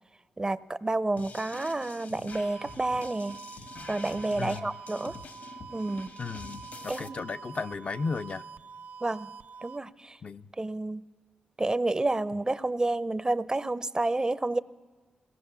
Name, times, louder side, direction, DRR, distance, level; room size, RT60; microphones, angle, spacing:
voice 1, 0.4-3.4 3.9-5.2 5.7-6.1 6.9-7.2 9.0-9.3 9.6-10.2 10.6-11.0 11.6-14.6, right 2 dB, 25° right, 16 dB, 0.7 m, -29 dB
sound 1, 1.2-7.1, left 4 dB, 70° left, 1.5 m, -46 dB
sound 2, 2.3-9.8, right 5 dB, 80° right, 0.7 m, -46 dB
voice 2, 4.4-4.8 6.2-8.5 10.2-10.5, left 4 dB, 50° left, 8 dB, 0.6 m, -35 dB
21.5 x 18.0 x 6.9 m, 1.4 s
cardioid pair, 65°, 3 cm